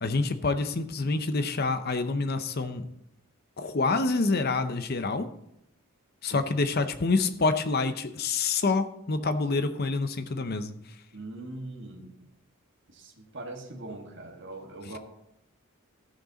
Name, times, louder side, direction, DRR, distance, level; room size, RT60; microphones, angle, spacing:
voice 1, 0.0-2.9 3.6-5.3 6.2-10.8 14.8-15.0, left 3 dB, 45° left, 10 dB, 0.6 m, -27 dB
voice 2, 11.1-12.1 12.9-15.0, right 2 dB, 55° right, 1 dB, 1.6 m, -41 dB
14.0 x 6.4 x 3.9 m, 0.79 s
head